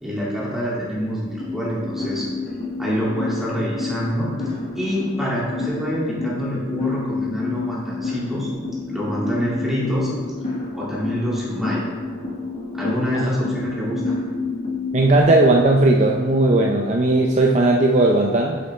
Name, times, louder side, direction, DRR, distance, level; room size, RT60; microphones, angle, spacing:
voice 1, 0.0-2.3 2.8-4.3 4.8-8.5 8.9-10.1 10.7-11.8 12.7-14.2, equal, ahead, -7 dB, 2.1 m, -26 dB
sound 1, 1.4-15.2, left 3 dB, 35° left, 1.2 m, -29 dB
voice 2, 14.9-18.6, right 2 dB, 35° right, 0 dB, 0.5 m, -17 dB
8.9 x 7.0 x 3.2 m, 1.5 s
head